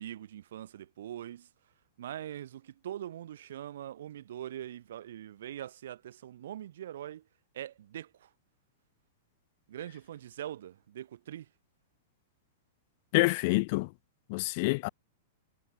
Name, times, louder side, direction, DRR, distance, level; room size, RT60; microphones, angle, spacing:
voice 1, 0.0-1.5 2.0-7.2 7.5-8.3 9.7-11.5, right 11 dB, 70° right, 3.2 m, -42 dB
voice 2, 13.1-13.9 14.3-14.9, left 26 dB, 45° left, 0.4 m, -27 dB
supercardioid pair, 155°, 0 cm